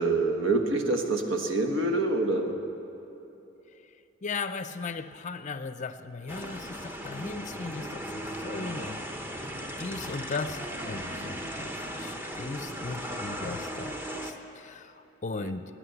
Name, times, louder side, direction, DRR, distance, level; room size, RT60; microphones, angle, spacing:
voice 1, 0.0-2.5 15.4-15.5, right 2 dB, 70° right, 5 dB, 1.3 m, -26 dB
voice 2, 4.2-9.0 9.8-15.6, left 4 dB, 35° left, 11 dB, 0.5 m, -37 dB
sound 1, 6.3-14.3, equal, 10° right, 0.9 m, -37 dB
17.0 x 10.0 x 8.0 m, 2.9 s
head